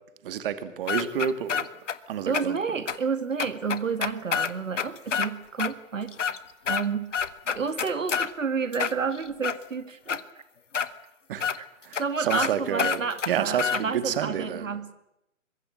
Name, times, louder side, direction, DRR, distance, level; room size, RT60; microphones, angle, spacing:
voice 1, 0.2-1.7 2.1-2.6 11.3-11.6 11.8-14.8, right 9 dB, 45° right, 11 dB, 2.2 m, -29 dB
sound 1, 0.9-2.0 2.3-2.4 2.9-3.0 3.4-5.3 5.6-5.7 6.1-6.9 7.1-8.3 8.7-9.6 10.1-10.2 10.7-10.9 11.4-11.6 11.9-12.0 12.3-12.5 12.8-13.8, left 7 dB, 65° left, 1.7 m, -27 dB
voice 2, 2.3-6.2 6.7-7.1 7.5-10.2 11.6-11.7 12.0-14.9, right 5 dB, 70° right, 11 dB, 2.3 m, -30 dB
24.5 x 22.5 x 7.6 m, 0.84 s
figure-of-eight pair, 125°, 40 cm